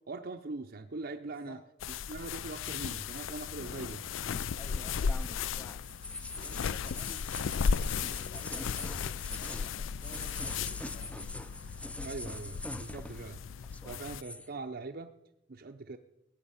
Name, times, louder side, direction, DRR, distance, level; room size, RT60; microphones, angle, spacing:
voice 1, 0.1-1.6 1.9-4.0 8.8-8.9 12.0-13.4 13.8-15.1 15.5-16.0, right 3 dB, 55° right, 5 dB, 0.6 m, -42 dB
voice 2, 1.2-1.6 4.5-5.4 6.4-7.7 8.2-11.4, left 1 dB, 30° left, 5 dB, 1.1 m, -53 dB
sound 1, 1.8-14.2, left 6 dB, 85° left, 0.4 m, -35 dB
sound 2, 4.3-13.4 13.6-14.5, left 2 dB, 5° left, 0.5 m, -44 dB
16.5 x 7.3 x 8.7 m, 0.91 s
head